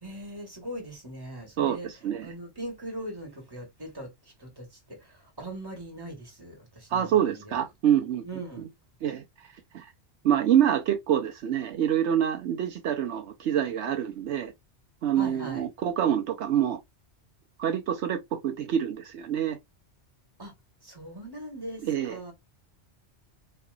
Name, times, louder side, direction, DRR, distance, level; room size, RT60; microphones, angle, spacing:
voice 1, 0.0-1.9 2.2-7.6 8.2-8.7 15.2-15.6 20.4-20.5 20.8-22.3, right 1 dB, 20° right, 1.7 m, -40 dB
voice 2, 1.6-2.3 6.9-8.2 9.0-9.2 9.7-9.9 10.2-14.5 15.0-16.8 17.6-19.6 21.8-22.2, right 10 dB, 75° right, 0.9 m, -26 dB
4.3 x 2.9 x 2.4 m
omnidirectional pair, 1.2 m